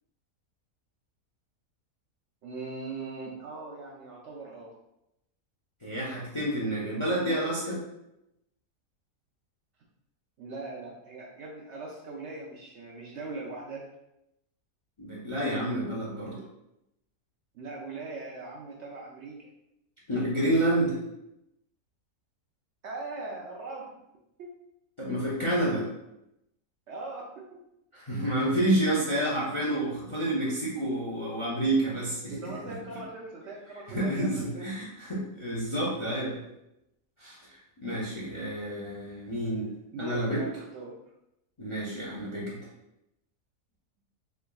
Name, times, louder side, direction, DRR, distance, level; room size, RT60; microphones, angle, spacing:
voice 1, 2.4-4.7 10.4-13.9 16.4-16.5 17.5-19.5 22.8-23.9 24.4-24.5 26.9-27.6 32.3-34.9 39.9-40.9, right 3 dB, 65° right, -3 dB, 0.7 m, -40 dB
voice 2, 5.8-7.8 15.0-16.4 20.1-21.0 25.0-25.9 27.9-32.3 33.9-36.4 37.2-39.7 40.0-40.4 41.6-42.6, right 1 dB, 35° left, -5 dB, 0.5 m, -29 dB
3.7 x 3.4 x 2.3 m, 0.84 s
omnidirectional pair, 1.6 m